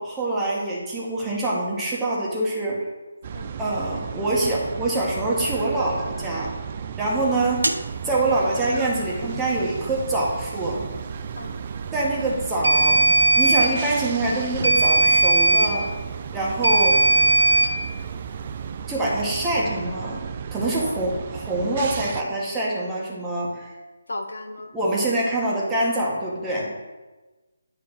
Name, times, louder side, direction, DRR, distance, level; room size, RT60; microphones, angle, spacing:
voice 1, 0.0-2.8 3.6-6.5 7.0-7.6 8.0-10.8 11.9-13.0 13.4-15.9 16.3-17.0 18.9-23.7 24.7-26.7, right 2 dB, 10° right, -5 dB, 1.5 m, -25 dB
sound 1, 3.2-22.2, right 7 dB, 35° right, 0.4 m, -34 dB
sound 2, 7.6-7.8 12.6-13.7 14.6-15.7 16.6-17.7, right 2 dB, 85° right, 0.5 m, -18 dB
voice 2, 24.1-24.7, left 2 dB, 70° left, 6 dB, 0.7 m, -35 dB
8.6 x 3.3 x 6.1 m, 1.2 s
figure-of-eight pair, 150°, 0 cm